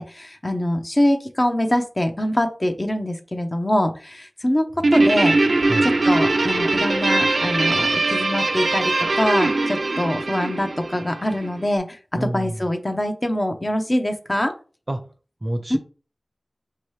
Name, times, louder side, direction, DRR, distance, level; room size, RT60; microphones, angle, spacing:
voice 1, 0.0-5.4 5.8-14.5 15.7-15.8, left 1 dB, 30° left, 0.6 m, -24 dB
voice 2, 4.8-5.1 5.7-5.9 12.1-12.7 14.9-15.1 15.4-15.8, right 1 dB, 35° right, 0.5 m, -29 dB
Guitar, 4.8-11.5, right 2 dB, 90° right, 0.4 m, -21 dB
4.5 x 2.9 x 3.2 m
wide cardioid pair, 65°, 0 cm